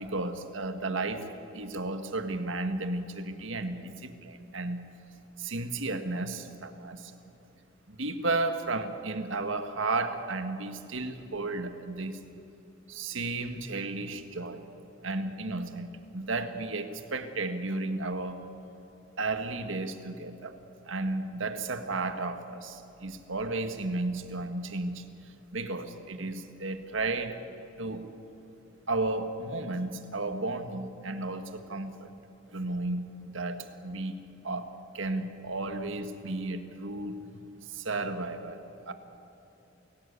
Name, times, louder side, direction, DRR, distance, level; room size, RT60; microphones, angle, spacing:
voice 1, 0.0-4.8 5.4-7.1 7.9-12.2 12.9-14.6 15.0-18.4 19.2-20.6 20.8-27.4 27.8-28.1 28.9-32.1 32.5-38.9, right 2 dB, 75° right, 8 dB, 1.7 m, -33 dB
29.0 x 17.0 x 8.4 m, 2.9 s
head